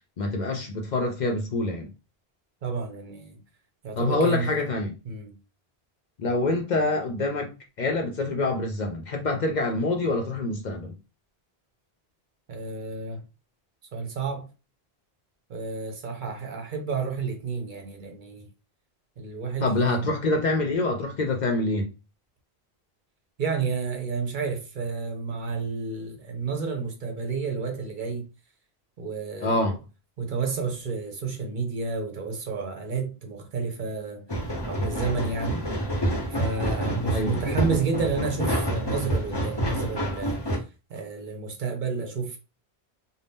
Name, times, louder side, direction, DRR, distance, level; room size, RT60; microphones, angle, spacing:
voice 1, 0.2-1.9 4.0-4.9 6.2-7.5 7.8-10.9 19.6-21.9 29.4-29.8 37.1-37.4, left 2 dB, 55° left, 0.6 m, -26 dB
voice 2, 2.6-3.4 3.8-4.6 5.1-5.3 12.5-13.2 13.9-14.5 15.5-18.5 19.2-20.1 23.4-28.3 29.0-29.7 30.2-34.3 34.7-35.7 36.3-40.6 40.9-42.4, right 5 dB, 55° right, 0.7 m, -31 dB
sound 1, 34.3-40.6, right 1 dB, 25° left, 0.8 m, -28 dB
2.6 x 2.1 x 3.4 m
omnidirectional pair, 1.1 m